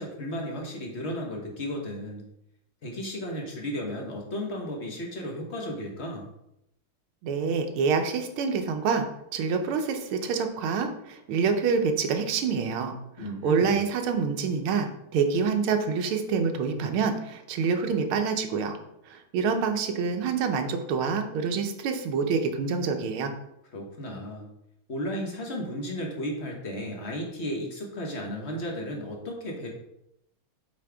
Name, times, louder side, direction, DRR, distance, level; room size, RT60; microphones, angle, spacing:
voice 1, 0.0-2.3 2.8-6.3 13.2-13.7 23.7-24.5 24.9-29.7, equal, 35° left, 0 dB, 1.2 m, -34 dB
voice 2, 7.2-9.1 9.3-18.8 19.1-23.3, right 5 dB, 85° right, 6 dB, 1.7 m, -27 dB
7.6 x 4.5 x 3.5 m, 0.81 s
omnidirectional pair, 2.3 m